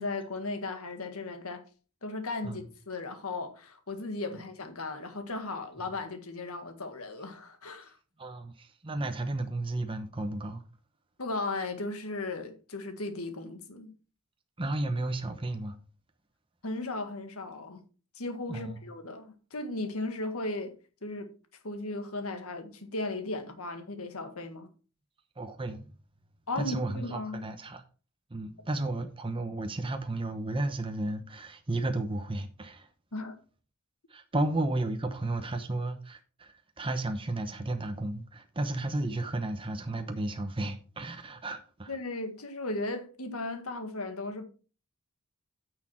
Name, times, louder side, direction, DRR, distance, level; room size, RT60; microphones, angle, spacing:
voice 1, 0.0-1.6 2.0-8.0 11.2-13.9 16.6-17.8 18.1-20.8 21.0-21.3 21.6-24.7 26.5-27.4 33.1-33.4 41.9-44.4, left 2 dB, 70° left, 1.7 m, -36 dB
voice 2, 8.2-10.6 14.6-15.8 18.5-18.9 25.4-25.9 26.6-27.8 28.3-32.9 34.1-41.9, right 2 dB, 25° right, 0.8 m, -33 dB
9.5 x 6.3 x 4.5 m
head